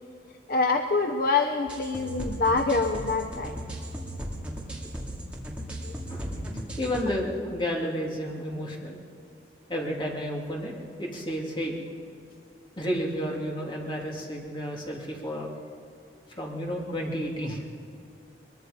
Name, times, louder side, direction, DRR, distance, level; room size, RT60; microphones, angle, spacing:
voice 1, 0.5-3.6 5.8-5.9, left 3 dB, 55° left, 6 dB, 0.8 m, -25 dB
sound 1, 1.7-7.0, equal, 5° right, 2.7 m, -36 dB
voice 2, 6.8-9.0 9.7-10.7 11.0-11.8 12.8-15.5 16.4-17.6, equal, 25° left, -2 dB, 2.8 m, -31 dB
23.0 x 22.0 x 5.3 m, 2.4 s
head